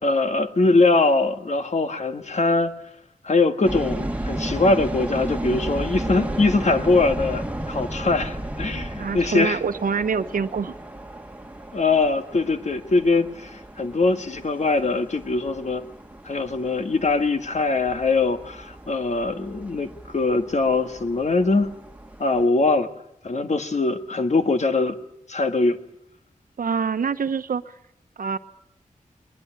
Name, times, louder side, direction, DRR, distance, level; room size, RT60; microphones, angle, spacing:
voice 1, 0.0-2.7 3.2-9.6 11.7-15.8 16.2-21.7 22.2-22.9 23.2-25.0 25.3-25.8, left 3 dB, 55° left, 7 dB, 2.0 m, -22 dB
sound 1, 3.6-22.5, right 1 dB, 10° right, 2.0 m, -34 dB
voice 2, 9.0-10.7 26.6-27.7 28.2-28.4, right 6 dB, 90° right, 11 dB, 1.2 m, -25 dB
21.5 x 21.5 x 8.9 m, 0.77 s
wide cardioid pair, 75°, 14 cm